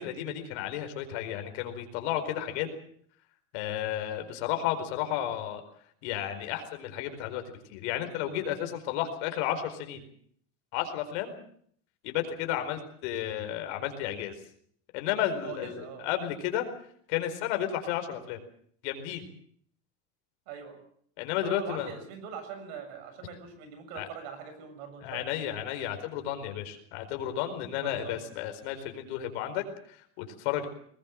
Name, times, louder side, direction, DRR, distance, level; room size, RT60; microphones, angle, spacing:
voice 1, 0.0-2.7 3.5-5.6 6.0-10.0 10.7-11.3 12.0-14.4 14.9-16.7 17.1-18.4 18.8-19.2 21.2-21.9 23.9-24.1 25.0-30.7, left 11 dB, 70° left, 7 dB, 4.6 m, -32 dB
voice 2, 15.4-16.0 20.5-20.8 21.4-25.4 27.8-28.2, right 6 dB, 60° right, 9 dB, 7.2 m, -42 dB
21.5 x 20.5 x 7.5 m, 0.63 s
cardioid pair, 175°, 36 cm